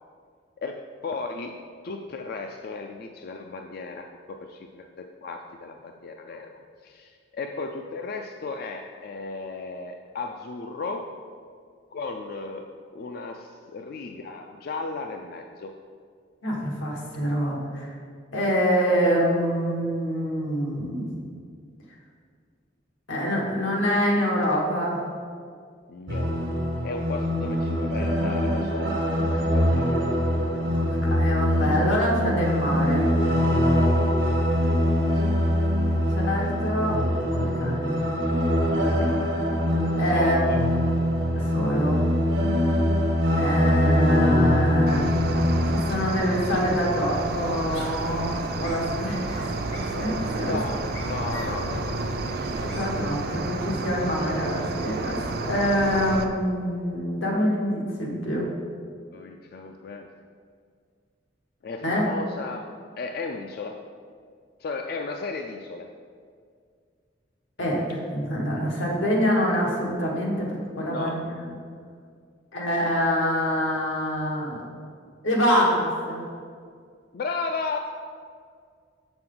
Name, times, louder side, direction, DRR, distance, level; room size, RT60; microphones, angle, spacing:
voice 1, 0.6-1.6 1.8-11.1 11.9-12.7 12.9-15.7 25.9-26.4 26.8-29.0 29.5-30.1 35.0-35.6 38.9-39.1 40.1-40.7 50.4-52.4 53.6-53.7 59.1-60.1 61.6-63.8 64.6-66.0 70.9-71.2 77.1-77.8, left 3 dB, 50° left, 4 dB, 0.3 m, -35 dB
voice 2, 16.4-17.9 18.3-21.1 23.1-25.0 30.7-33.1 36.1-37.0 37.3-38.0 38.9-39.0 40.0-40.4 41.3-42.0 43.3-45.1 45.7-49.3 49.7-50.6 52.4-58.5 61.8-62.1 67.6-71.6 72.5-74.6 75.2-76.3, equal, 90° left, -2 dB, 1.5 m, -25 dB
sound 1, 26.1-45.8, equal, 80° right, 1.2 m, -23 dB
Cricket, 44.9-56.2, right 3 dB, 55° right, 0.5 m, -31 dB
sound 2, 47.1-52.9, equal, 70° left, 1.5 m, -39 dB
6.7 x 6.1 x 3.8 m, 2.1 s
head